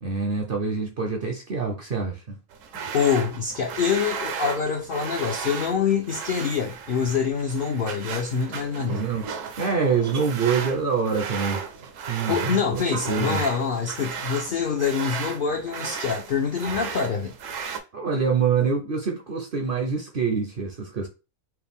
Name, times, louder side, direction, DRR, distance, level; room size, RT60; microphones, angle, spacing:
voice 1, 0.0-2.4 8.5-9.3 9.6-11.6 12.1-13.4 17.9-21.1, right 5 dB, 55° right, 0.6 m, -26 dB
sound 1, 2.5-17.8, right 6 dB, 70° right, 0.9 m, -35 dB
voice 2, 2.7-9.1 12.3-17.3, left 6 dB, 65° left, 0.5 m, -25 dB
4.5 x 2.1 x 3.5 m
omnidirectional pair, 1.5 m